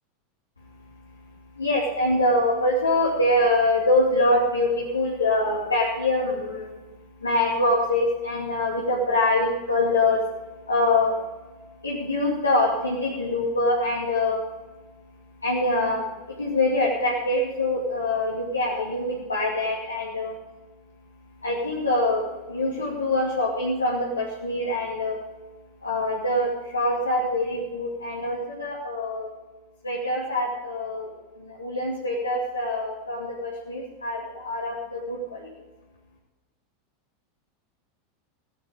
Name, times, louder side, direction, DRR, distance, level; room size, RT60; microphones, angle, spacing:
voice 1, 1.6-6.8 7.2-10.2 10.7-11.2 11.8-14.4 15.4-16.0 16.3-20.3 21.4-22.2 22.5-25.2 25.8-29.3 29.8-31.1 31.4-35.5, left 2 dB, 85° left, -5 dB, 2.5 m, -24 dB
16.0 x 11.5 x 5.2 m, 1.2 s
figure-of-eight pair, 85°, 0 cm